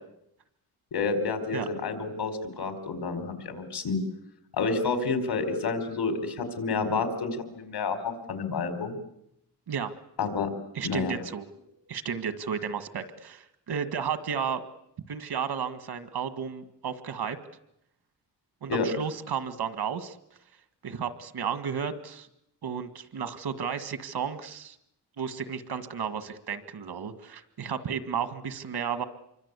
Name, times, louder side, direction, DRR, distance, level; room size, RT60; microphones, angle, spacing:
voice 1, 0.9-4.0 4.5-9.0 10.2-10.5 10.8-11.1 18.7-18.9, left 4 dB, 85° left, 8 dB, 4.6 m, -29 dB
voice 2, 10.7-11.5 11.9-14.6 15.1-17.4 18.6-20.2 20.8-22.3 22.6-24.8 25.2-29.0, right 7 dB, 75° right, 11 dB, 1.9 m, -33 dB
27.0 x 24.0 x 8.3 m, 0.80 s
wide cardioid pair, 160°, 38 cm